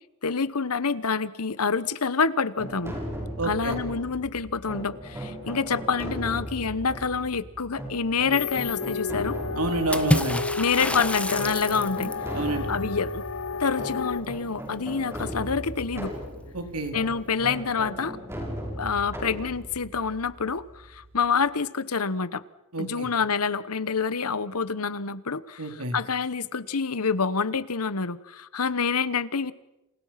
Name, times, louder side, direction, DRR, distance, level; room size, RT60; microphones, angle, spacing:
voice 1, 0.2-2.9 3.4-9.4 10.6-13.2 13.6-16.1 16.9-18.2 18.8-22.4 22.8-29.5, left 5 dB, 80° left, 16 dB, 1.1 m, -27 dB
sound 1, 2.6-21.3, equal, 10° right, 7.2 m, -37 dB
voice 2, 3.4-3.8 9.5-10.4 12.3-12.7 16.5-16.9 22.7-23.1 25.6-26.0, right 2 dB, 80° right, 5 dB, 3.8 m, -28 dB
sound 2, 8.3-14.2, left 5 dB, 60° left, 0.9 m, -32 dB
Water / Splash splatter, 9.9-12.3, left 1 dB, 5° left, 1.2 m, -27 dB
30.0 x 28.5 x 5.9 m, 0.98 s
head